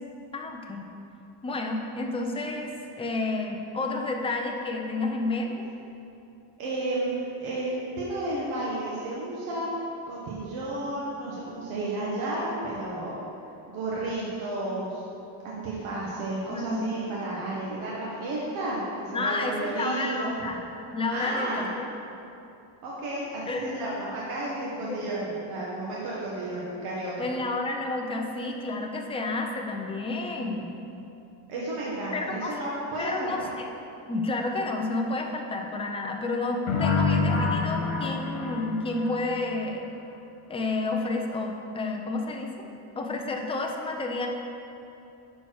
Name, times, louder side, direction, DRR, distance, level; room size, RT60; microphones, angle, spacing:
voice 1, 0.3-0.9 1.4-2.7 3.0-5.7 16.5-16.9 19.1-20.6 20.9-21.9 23.5-23.6 24.6-25.1 27.2-30.8 32.1-32.5 33.0-33.4 34.1-39.9 40.5-42.7 43.0-44.3, left 2 dB, 15° left, 2 dB, 0.4 m, -30 dB
voice 2, 6.6-9.7 10.1-13.1 13.7-15.0 15.4-20.3 21.1-21.6 22.8-27.3 31.5-33.5, right 2 dB, 85° right, -6 dB, 1.6 m, -32 dB
sound 1, 36.7-39.5, left 4 dB, 80° left, 1.5 m, -26 dB
10.5 x 4.5 x 4.7 m, 2.8 s
cardioid pair, 175°, 48 cm